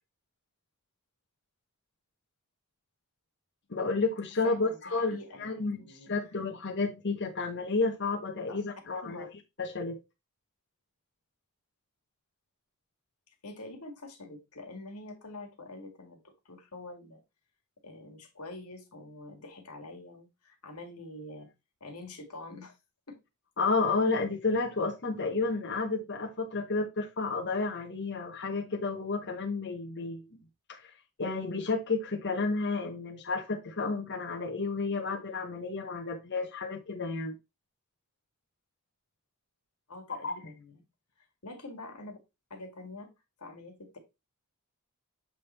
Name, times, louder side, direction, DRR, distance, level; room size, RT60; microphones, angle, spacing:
voice 1, 3.7-9.3 9.6-10.0 23.6-30.3 30.7-30.9 31.2-37.3 40.1-40.4, left 3 dB, 50° left, 1.0 m, -31 dB
voice 2, 4.4-6.3 8.5-8.7 9.0-9.3 13.4-16.2 16.5-17.2 17.8-21.5 21.8-22.8 23.1-23.2 39.9-40.8 41.4-42.2 42.5-43.1 43.4-44.0, left 2 dB, 90° left, 1.9 m, -46 dB
7.5 x 3.5 x 4.2 m
head